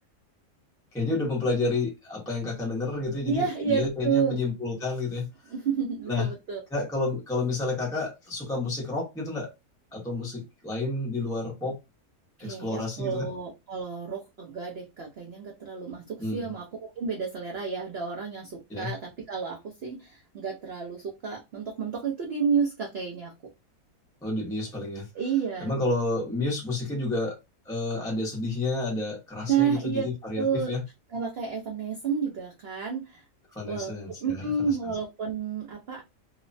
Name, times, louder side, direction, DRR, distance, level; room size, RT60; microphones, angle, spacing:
voice 1, 0.9-5.5 6.1-6.3 6.7-9.5 9.9-11.8 12.4-13.3 16.2-16.5 18.7-18.9 24.2-25.1 25.6-27.4 27.6-30.8 33.5-34.8, left 2 dB, 5° left, 0.4 m, -30 dB
voice 2, 3.3-4.4 5.5-6.6 12.4-23.3 25.1-25.7 29.5-30.1 30.3-30.7 31.1-33.2 33.7-36.0, right 6 dB, 75° right, 0.5 m, -30 dB
2.9 x 2.1 x 2.5 m
omnidirectional pair, 1.8 m